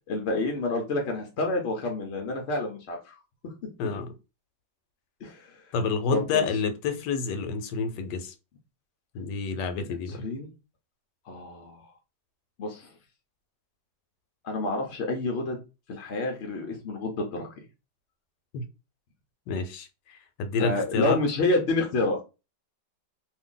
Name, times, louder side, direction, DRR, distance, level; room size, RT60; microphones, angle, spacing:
voice 1, 0.1-3.5 5.2-5.6 6.1-6.4 9.9-10.5 11.3-11.9 12.6-12.9 14.4-15.6 15.9-17.5 20.6-22.2, left 2 dB, 60° left, 0.7 m, -29 dB
voice 2, 3.8-4.1 5.7-8.3 9.1-10.2 18.5-18.6 19.5-21.2, left 5 dB, 85° left, 1.2 m, -29 dB
2.7 x 2.6 x 3.7 m
omnidirectional pair, 1.9 m